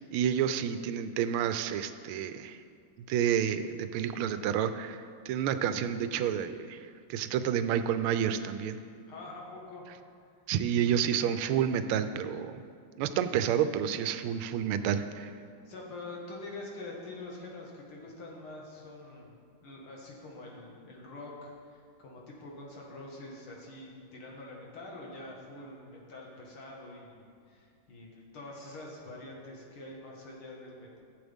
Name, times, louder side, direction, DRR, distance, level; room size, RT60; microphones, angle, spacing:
voice 1, 0.1-2.6 3.0-8.8 10.5-12.6 13.0-15.3, right 9 dB, 85° right, 11 dB, 1.4 m, -30 dB
voice 2, 9.1-9.9 15.7-19.3 19.6-31.0, left 2 dB, 80° left, -2 dB, 2.5 m, -45 dB
15.5 x 7.7 x 3.5 m, 2.3 s
omnidirectional pair, 2.3 m